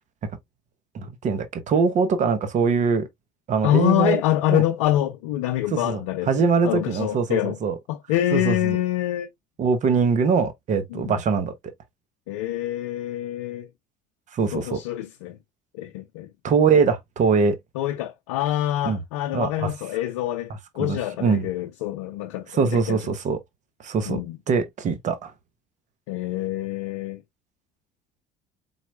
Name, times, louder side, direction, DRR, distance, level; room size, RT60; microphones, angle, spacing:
voice 1, 0.9-3.1 3.5-4.2 4.5-4.6 5.7-6.0 6.3-7.8 8.3-8.8 9.6-11.5 14.3-14.8 16.4-17.6 18.9-19.0 19.3-19.7 20.8-21.5 22.6-23.4 23.8-25.3, right 5 dB, 55° right, 0.9 m, -22 dB
voice 2, 3.6-7.6 7.9-9.3 10.9-11.2 12.3-13.7 14.5-15.4 15.7-16.3 17.7-23.1 24.1-24.4 26.1-27.2, left 13 dB, 85° left, 0.4 m, -26 dB
4.3 x 4.0 x 2.3 m
hypercardioid pair, 65°, 15 cm